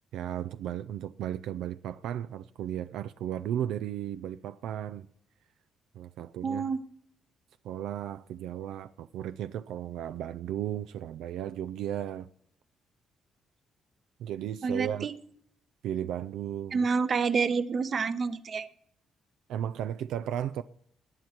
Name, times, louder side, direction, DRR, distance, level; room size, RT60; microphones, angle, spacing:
voice 1, 0.1-5.1 5.9-6.7 7.6-12.3 14.2-15.1 15.8-16.9 19.5-20.6, right 10 dB, 85° right, 0.4 m, -35 dB
voice 2, 6.4-6.8 14.6-15.1 16.7-18.7, right 5 dB, 45° right, 0.9 m, -28 dB
18.5 x 9.7 x 4.4 m
cardioid pair, 90°, 0 cm